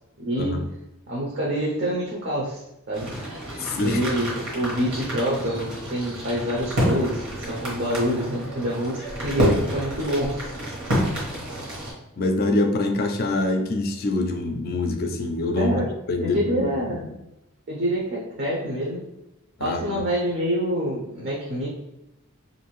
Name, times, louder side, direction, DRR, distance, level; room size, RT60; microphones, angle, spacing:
voice 1, 1.1-3.1 3.8-10.6 15.6-15.8 16.2-17.1 17.7-19.0 19.6-21.7, equal, 50° right, -4 dB, 0.6 m, -26 dB
sound 1, 2.9-11.9, equal, 80° right, 1.2 m, -29 dB
voice 2, 3.6-4.0 9.5-9.7 12.2-15.8 16.1-16.7 19.6-20.0, left 2 dB, 45° left, 5 dB, 0.4 m, -25 dB
2.6 x 2.6 x 3.0 m, 0.90 s
head